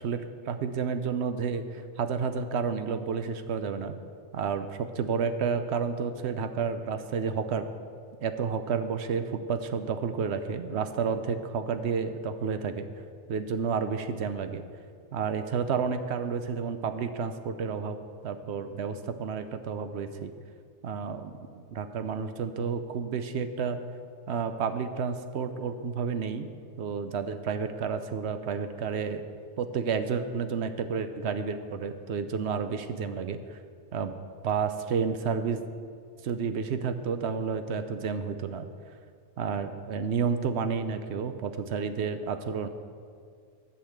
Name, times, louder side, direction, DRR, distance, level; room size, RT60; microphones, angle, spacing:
voice 1, 0.0-4.0 4.3-7.7 8.2-12.8 13.3-14.6 15.1-18.0 18.2-20.3 20.8-23.8 24.3-26.5 26.8-29.3 29.6-33.6 33.9-34.2 34.4-35.6 36.2-38.7 39.4-42.7, right 6 dB, 65° right, 9 dB, 0.9 m, -31 dB
12.0 x 5.5 x 8.0 m, 2.2 s
omnidirectional pair, 1.3 m